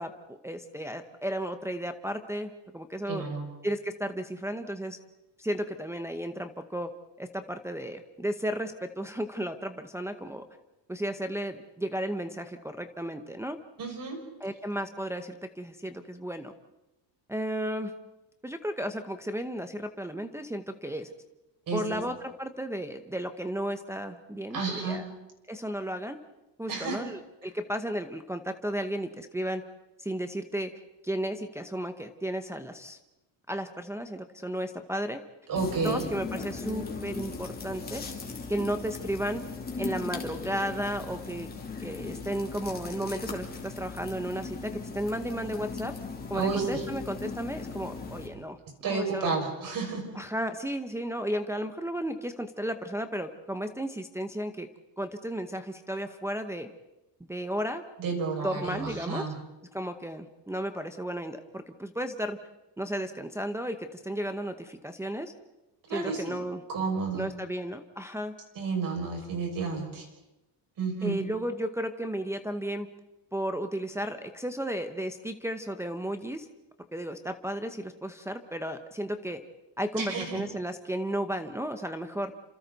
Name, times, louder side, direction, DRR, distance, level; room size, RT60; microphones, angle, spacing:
voice 1, 0.0-3.2 3.6-5.0 5.4-6.9 7.2-10.4 10.9-13.6 14.4-16.5 17.3-17.9 18.4-21.1 21.7-25.0 25.5-26.2 26.6-29.6 30.0-30.7 31.0-33.0 33.5-35.2 35.8-38.1 38.5-39.4 39.8-41.5 41.8-46.0 46.3-48.6 48.8-49.3 50.1-54.7 55.0-56.7 57.2-57.8 58.1-59.2 59.7-62.4 62.8-65.3 65.9-66.6 67.1-68.3 71.0-72.9 73.3-76.5 76.9-79.4 79.8-82.3, equal, 5° right, 6 dB, 0.8 m, -34 dB
voice 2, 3.1-3.5 13.8-14.2 21.7-22.0 24.5-25.0 26.7-27.0 35.5-36.1 46.3-46.8 48.8-50.1 58.0-59.4 65.9-66.4 66.7-67.3 68.6-70.1 70.8-71.2 79.9-80.4, right 4 dB, 45° right, 2 dB, 6.0 m, -31 dB
sound 1, 35.6-48.3, left 4 dB, 20° left, 2.9 m, -38 dB
30.0 x 26.5 x 4.1 m, 1.0 s
cardioid pair, 160°, 46 cm